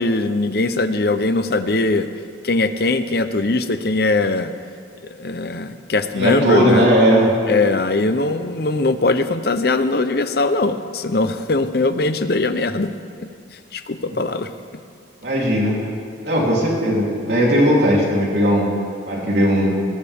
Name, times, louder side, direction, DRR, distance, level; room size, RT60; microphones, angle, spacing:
voice 1, 0.0-2.1 2.4-4.5 5.1-6.9 7.5-12.9 13.2-13.3 13.7-14.5, left 2 dB, 55° left, 10 dB, 0.8 m, -20 dB
voice 2, 6.1-7.4 15.2-15.9 16.2-18.8 19.1-19.8, equal, 65° right, -4 dB, 3.6 m, -17 dB
21.0 x 18.0 x 3.6 m, 2.2 s
head